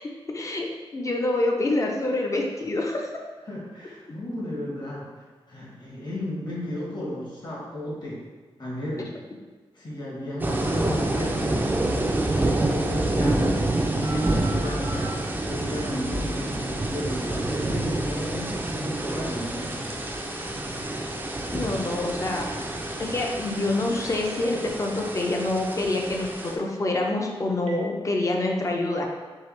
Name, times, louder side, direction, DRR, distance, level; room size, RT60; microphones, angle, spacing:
voice 1, 0.3-0.7 0.9-3.1 4.5-4.6 6.9-7.0 10.0-10.1 16.1-16.2 21.5-22.5 23.0-26.3 26.5-29.1, left 2 dB, 35° left, 1 dB, 0.6 m, -26 dB
voice 2, 3.5-8.2 8.6-9.1 9.7-11.7 12.6-20.0, equal, 50° left, -5 dB, 1.4 m, -34 dB
sound 1, 10.4-26.6, right 2 dB, 20° right, 0.4 m, -28 dB
Telephone, 14.0-15.2 19.6-27.8, left 1 dB, 75° right, 0.8 m, -44 dB
4.6 x 2.9 x 3.2 m, 1.4 s
wide cardioid pair, 110°, 10 cm